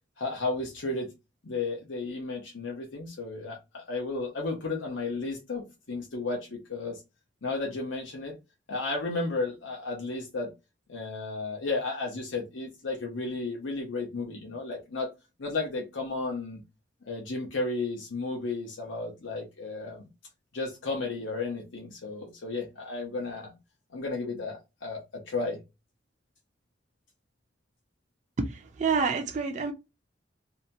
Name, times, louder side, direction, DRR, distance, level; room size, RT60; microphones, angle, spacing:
voice 1, 0.2-1.1 1.4-7.0 7.4-8.4 8.7-10.5 10.9-15.1 15.4-16.6 17.1-20.0 20.5-23.5 23.9-25.6, left 3 dB, 90° left, 0.8 m, -33 dB
voice 2, 28.4-29.7, right 5 dB, 40° right, 0.4 m, -28 dB
2.8 x 2.2 x 2.7 m
head